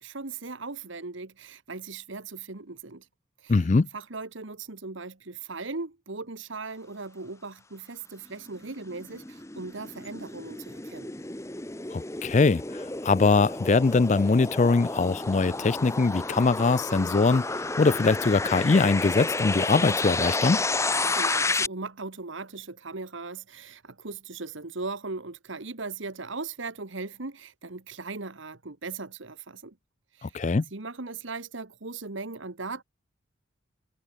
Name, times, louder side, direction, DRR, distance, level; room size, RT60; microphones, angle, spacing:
voice 1, 0.0-3.1 3.4-11.1 20.9-29.8 30.1-30.4 30.7-32.8, right 3 dB, 65° right, 1.4 m, -38 dB
voice 2, 3.5-3.9 11.9-20.6 30.2-30.6, left 4 dB, 35° left, 0.4 m, -22 dB
sound 1, 8.5-21.7, left 3 dB, 15° left, 1.0 m, -31 dB
head